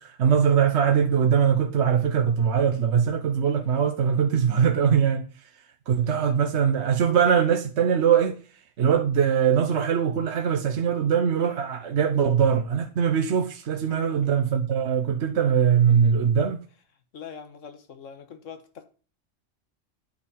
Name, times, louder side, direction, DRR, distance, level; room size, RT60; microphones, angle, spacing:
voice 1, 0.0-5.5 5.9-8.4 8.8-16.6, right 7 dB, 70° right, 1.0 m, -22 dB
voice 2, 6.0-6.4 13.9-14.3 17.1-18.8, left 7 dB, 85° left, 1.6 m, -43 dB
9.1 x 5.2 x 6.8 m
omnidirectional pair, 1.3 m